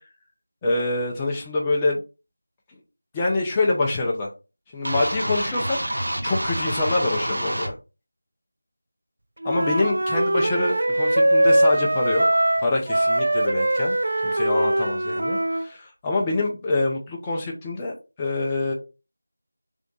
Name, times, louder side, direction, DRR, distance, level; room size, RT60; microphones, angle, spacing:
voice 1, 0.6-2.0 3.1-4.3 4.7-5.8 6.2-7.7 9.4-12.2 12.6-13.9 14.2-18.7, left 2 dB, 10° left, -2 dB, 0.6 m, -25 dB
sound 1, 4.9-7.7, right 1 dB, 70° right, 1.0 m, -27 dB
Wind instrument woodwind instrument, 9.4-15.7, right 1 dB, 55° right, 0.3 m, -21 dB
3.5 x 2.4 x 3.7 m, 0.31 s
figure-of-eight pair, 175°, 0 cm